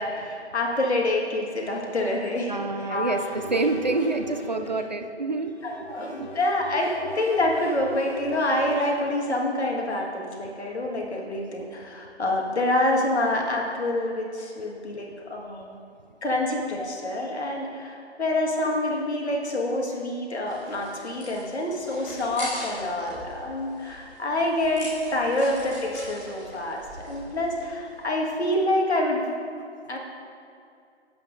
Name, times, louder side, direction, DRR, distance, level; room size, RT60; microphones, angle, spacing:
voice 1, 0.0-3.2 5.6-15.7 16.2-29.3 29.9-30.0, left 1 dB, 70° left, -1 dB, 1.8 m, -27 dB
voice 2, 2.5-5.5 6.2-6.3, right 3 dB, 40° right, 6 dB, 0.4 m, -27 dB
sound 1, 3.1-4.8 5.5-9.2, left 1 dB, 45° left, 2.2 m, -41 dB
sound 2, 20.4-28.4, equal, 10° left, 1.2 m, -42 dB
11.5 x 8.2 x 2.6 m, 2.4 s
figure-of-eight pair, 160°, 35 cm